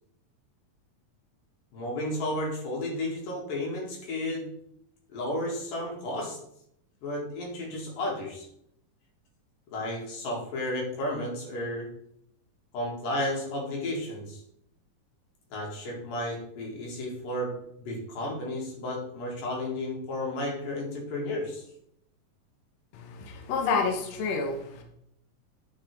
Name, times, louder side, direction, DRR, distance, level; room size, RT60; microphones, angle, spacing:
voice 1, 1.7-4.5 5.1-6.4 7.0-8.5 9.7-11.9 12.7-14.4 15.5-21.6, left 1 dB, 90° left, -2 dB, 3.7 m, -33 dB
voice 2, 22.9-24.8, left 4 dB, 65° left, 3 dB, 2.0 m, -29 dB
9.4 x 5.3 x 3.5 m, 0.73 s
omnidirectional pair, 3.8 m